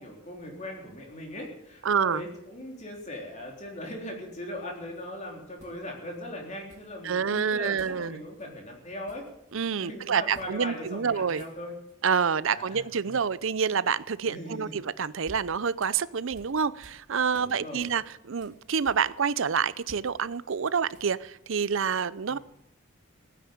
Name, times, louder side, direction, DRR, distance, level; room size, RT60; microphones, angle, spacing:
voice 1, 0.0-9.3 9.8-11.7 12.5-13.2 14.2-14.8 17.3-17.9 22.3-22.4, left 1 dB, 35° left, 0 dB, 3.9 m, -40 dB
voice 2, 1.8-2.2 7.0-8.2 9.5-11.4 12.0-22.4, right 6 dB, 65° right, 18 dB, 0.6 m, -27 dB
sound 1, 4.9-5.1 5.6-6.2 6.7-7.3 7.8-8.0 8.3-8.5 8.8-9.7 10.3-10.6 10.8-11.0 11.3-12.0 14.8-17.0 17.3-19.4 19.7-21.3, right 1 dB, 35° right, 3.2 m, -54 dB
16.5 x 9.5 x 8.7 m, 0.82 s
head